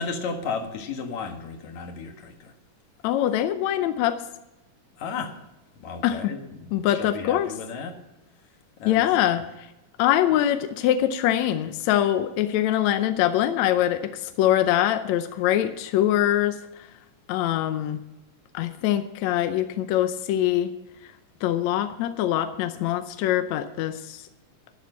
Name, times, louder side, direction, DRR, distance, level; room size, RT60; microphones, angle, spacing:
voice 1, 0.0-2.5 5.0-5.4 5.8-7.9 8.8-9.0, left 5 dB, 60° left, 4 dB, 2.8 m, -34 dB
voice 2, 3.0-4.2 6.0-6.3 6.7-7.5 8.8-9.7 10.0-16.6 17.3-18.0 18.5-20.7 21.4-24.2, left 12 dB, 75° left, 9 dB, 1.7 m, -23 dB
12.5 x 11.5 x 5.7 m, 0.97 s
omnidirectional pair, 3.9 m